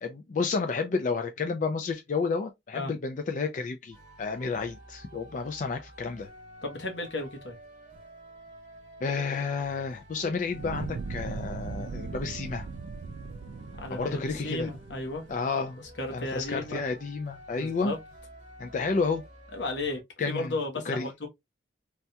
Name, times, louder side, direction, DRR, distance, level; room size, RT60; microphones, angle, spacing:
voice 1, 0.0-6.3 9.0-12.7 13.9-14.7 15.3-15.8 16.1-17.9 18.6-19.2 20.2-20.5 20.9-21.1, left 4 dB, 45° left, 0.3 m, -31 dB
sound 1, 3.9-20.0, right 1 dB, 45° right, 1.0 m, -51 dB
voice 2, 6.6-7.6 13.7-15.2 16.0-16.8 17.6-18.0 19.5-20.0 20.3-21.3, left 2 dB, 85° left, 1.0 m, -34 dB
Fire, 10.4-15.6, right 4 dB, 75° right, 0.3 m, -39 dB
3.4 x 2.2 x 2.7 m
head